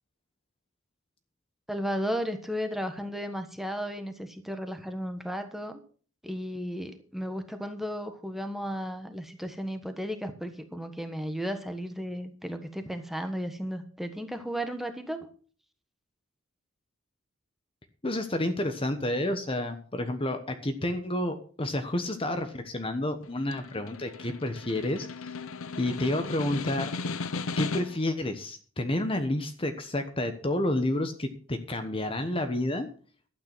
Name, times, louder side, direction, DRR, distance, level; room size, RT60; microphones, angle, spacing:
voice 1, 1.7-5.8 6.2-15.3, equal, ahead, 7 dB, 1.3 m, -34 dB
voice 2, 18.0-25.1 25.8-26.9 27.6-32.9, left 1 dB, 25° left, 7 dB, 1.1 m, -30 dB
Snare drum, 23.2-28.1, left 4 dB, 80° left, 0.8 m, -36 dB
12.0 x 9.0 x 6.1 m, 0.42 s
head